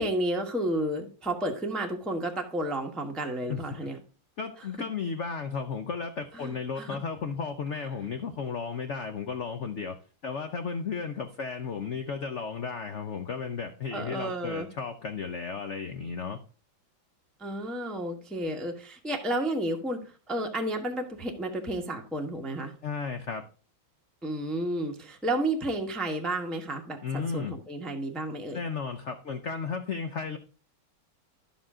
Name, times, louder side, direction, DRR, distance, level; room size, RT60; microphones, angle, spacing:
voice 1, 0.0-4.0 6.3-7.0 13.9-14.7 17.4-22.7 24.2-28.6, right 1 dB, ahead, 3 dB, 0.8 m, -32 dB
voice 2, 4.4-10.0 10.2-16.4 22.8-23.4 27.0-27.5 28.5-30.4, left 5 dB, 75° left, 8 dB, 0.6 m, -34 dB
11.0 x 7.2 x 3.7 m, 0.37 s
omnidirectional pair, 2.1 m